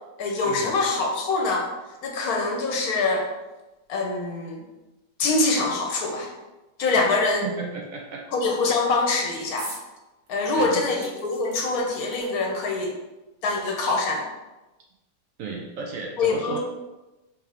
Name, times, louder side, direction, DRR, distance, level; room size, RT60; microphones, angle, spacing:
voice 1, 0.2-1.6 2.0-3.3 3.9-4.6 5.2-6.3 6.8-7.5 8.3-9.7 10.3-12.9 13.4-14.2 16.2-16.6, left 3 dB, 65° left, 1 dB, 1.1 m, -24 dB
voice 2, 7.4-8.2 10.6-10.9 15.4-16.6, right 5 dB, 65° right, 0 dB, 0.9 m, -34 dB
opening a soda can, 9.6-9.9 10.3-10.4 11.0-12.7 13.5-13.6 13.9-14.0, right 2 dB, 90° right, 1.8 m, -42 dB
4.5 x 3.4 x 3.4 m, 1.1 s
omnidirectional pair, 1.8 m